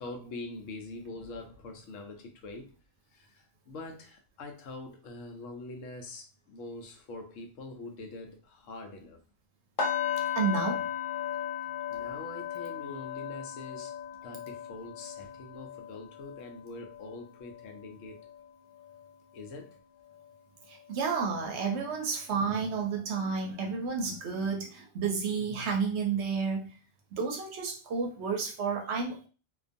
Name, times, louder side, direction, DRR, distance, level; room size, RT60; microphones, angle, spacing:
voice 1, 0.0-2.7 3.1-9.2 11.9-13.9 14.2-18.2 19.3-19.8, left 2 dB, 75° left, 0.9 m, -44 dB
sound 1, 9.8-19.7 20.0-20.3 20.8-20.9, left 9 dB, 50° left, 0.7 m, -37 dB
voice 2, 10.4-10.9 20.7-26.7 27.1-29.3, right 5 dB, 65° right, 0.8 m, -31 dB
2.4 x 2.3 x 2.5 m
omnidirectional pair, 1.3 m